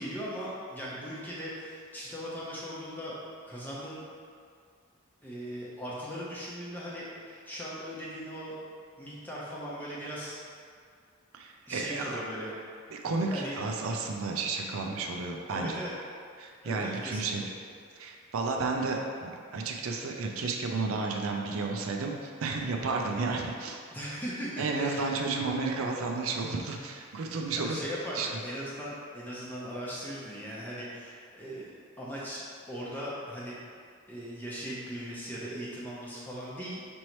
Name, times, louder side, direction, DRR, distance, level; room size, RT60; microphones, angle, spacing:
voice 1, 0.0-3.1 3.4-4.0 5.2-8.5 8.9-10.4 11.7-12.7 13.3-13.6 15.5-15.9 16.6-17.3 23.9-25.1 27.6-31.7 32.0-33.6 34.1-36.9, equal, 10° left, -7 dB, 0.7 m, -39 dB
voice 2, 11.3-12.2 12.9-15.8 16.4-17.5 17.9-23.8 24.6-27.9 28.1-28.3, right 3 dB, 80° right, 1 dB, 0.5 m, -32 dB
5.3 x 3.1 x 3.0 m, 2.2 s
head